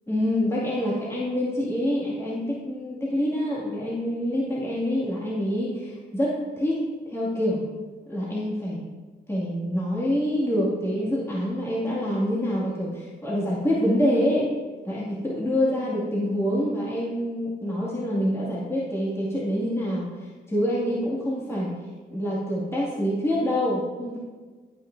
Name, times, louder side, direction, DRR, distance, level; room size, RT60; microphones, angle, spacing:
voice 1, 0.1-7.6 8.1-8.8 9.3-14.5 14.9-21.7 22.1-24.2, equal, 15° left, -6 dB, 2.1 m, -26 dB
15.5 x 5.7 x 2.6 m, 1.4 s
cardioid pair, 70°, 20 cm